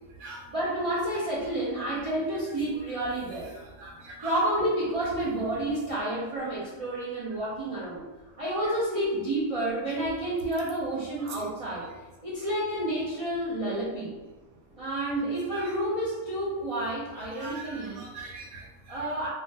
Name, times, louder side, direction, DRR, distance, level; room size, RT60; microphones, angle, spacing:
voice 1, 0.5-3.5 4.2-8.0 8.4-11.9 12.2-14.2 14.7-18.1 18.9-19.3, right 1 dB, 60° right, -9 dB, 0.3 m, -30 dB
voice 2, 3.8-4.4 15.5-15.6 17.4-19.0, right 3 dB, 80° right, -2 dB, 1.0 m, -42 dB
2.5 x 2.1 x 3.2 m, 1.2 s
omnidirectional pair, 1.5 m